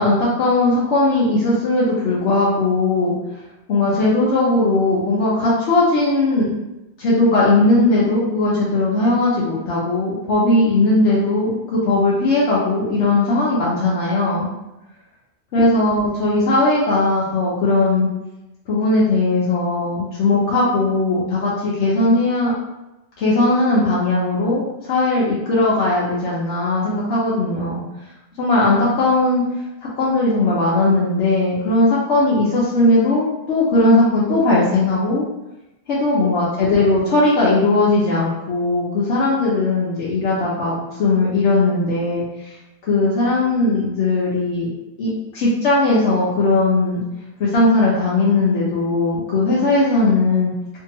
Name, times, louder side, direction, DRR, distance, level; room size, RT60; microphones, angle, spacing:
voice 1, 0.0-3.2 3.7-6.5 7.0-14.5 15.5-18.1 18.7-22.5 23.2-27.8 28.4-29.4 30.0-35.2 35.9-42.6 42.9-44.7 45.0-47.0 47.4-50.5, left 2 dB, 85° left, -6 dB, 1.0 m, -18 dB
2.7 x 2.6 x 2.9 m, 0.94 s
omnidirectional pair, 1.2 m